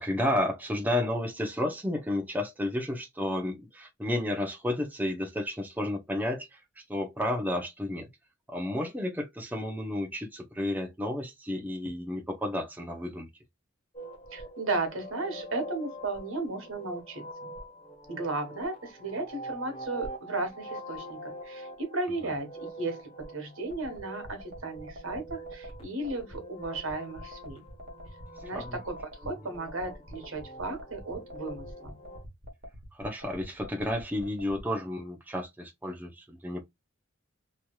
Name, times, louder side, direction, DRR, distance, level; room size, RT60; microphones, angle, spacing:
voice 1, 0.0-8.1 8.5-13.3 28.4-28.8 32.9-36.6, left 1 dB, 10° right, 0.6 m, -32 dB
sound 1, 13.9-32.2, right 1 dB, 30° left, 1.1 m, -45 dB
voice 2, 14.3-17.5 18.1-27.6 28.4-28.9 29.2-31.9, right 2 dB, 75° right, 1.4 m, -35 dB
sound 2, 23.7-34.6, equal, 45° right, 1.2 m, -45 dB
3.1 x 2.8 x 2.3 m
head